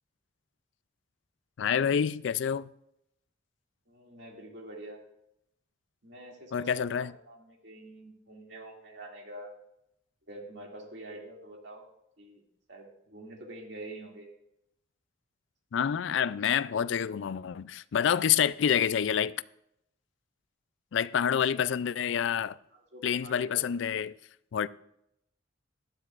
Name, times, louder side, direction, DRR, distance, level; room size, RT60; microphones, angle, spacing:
voice 1, 1.6-2.7 6.5-7.1 15.7-19.4 20.9-22.6 23.0-24.1 24.5-24.7, left 8 dB, 65° left, 0.3 m, -27 dB
voice 2, 3.9-5.0 6.0-9.5 10.3-11.8 12.2-12.4 12.7-14.3 22.7-24.0, right 1 dB, 60° right, 2.4 m, -46 dB
16.5 x 12.0 x 2.4 m
head